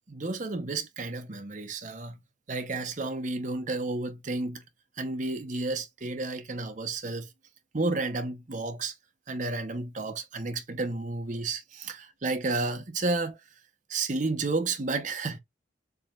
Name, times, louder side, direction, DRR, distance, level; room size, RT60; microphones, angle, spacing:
voice 1, 0.1-2.2 2.5-4.7 5.0-7.3 7.7-8.9 9.3-13.4 13.9-15.4, right 3 dB, 40° right, 0.7 m, -31 dB
4.7 x 3.4 x 2.3 m
head